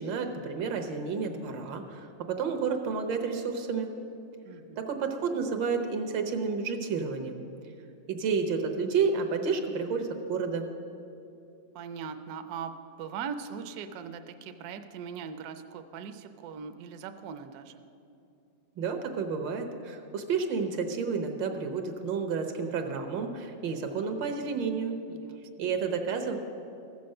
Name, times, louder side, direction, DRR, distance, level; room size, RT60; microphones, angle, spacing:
voice 1, 0.0-3.9 4.8-7.5 8.1-10.6 18.8-25.0 25.6-26.4, right 5 dB, 85° right, 6 dB, 1.7 m, -30 dB
voice 2, 4.4-4.8 11.7-17.8 25.1-25.7, right 6 dB, 70° right, 8 dB, 1.0 m, -40 dB
14.5 x 6.9 x 6.5 m, 2.7 s
omnidirectional pair, 2.0 m